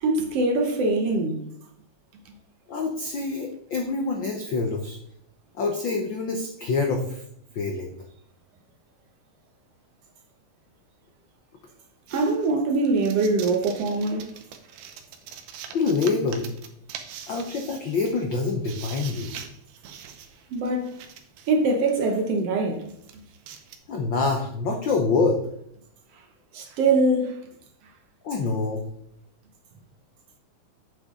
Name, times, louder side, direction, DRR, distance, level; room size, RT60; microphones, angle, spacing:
voice 1, 0.0-1.5 12.1-14.3 20.5-20.9 21.5-23.2 26.1-26.2 26.5-27.4, right 3 dB, 65° right, 1.7 m, -23 dB
voice 2, 2.7-5.0 5.6-7.2 7.5-7.9 15.7-16.5 17.3-19.3 23.9-25.4 28.2-28.9, left 4 dB, 80° left, 1.0 m, -26 dB
sound 1, 12.1-21.7 22.3-22.4 22.8-23.8, right 8 dB, 80° right, 2.3 m, -43 dB
8.2 x 8.1 x 3.7 m
omnidirectional pair, 3.5 m